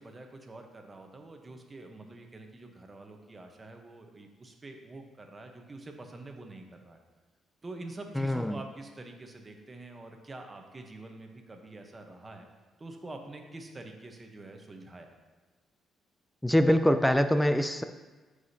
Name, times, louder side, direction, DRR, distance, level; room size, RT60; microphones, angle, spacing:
voice 1, 0.0-7.0 7.6-12.5 12.8-15.1, right 2 dB, 25° right, 3 dB, 1.0 m, -46 dB
voice 2, 8.2-8.6 16.4-17.8, equal, 5° left, 9 dB, 0.4 m, -24 dB
13.0 x 4.9 x 2.8 m, 1.3 s
cardioid pair, 90°, 0 cm